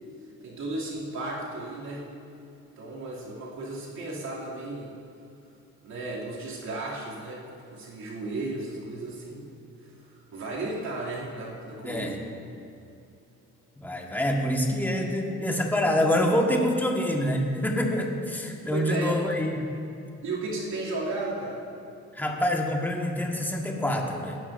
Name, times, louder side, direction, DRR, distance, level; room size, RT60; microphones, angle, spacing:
voice 1, 0.4-2.1 2.8-4.9 5.8-7.4 7.7-9.5 10.0-12.2 18.7-19.2 20.2-21.6, right 2 dB, 65° right, -6 dB, 2.8 m, -34 dB
voice 2, 11.8-12.2 13.8-19.6 22.1-24.4, left 1 dB, 5° left, 0 dB, 1.5 m, -26 dB
18.5 x 11.0 x 2.6 m, 2.6 s
cardioid pair, 90°, 30 cm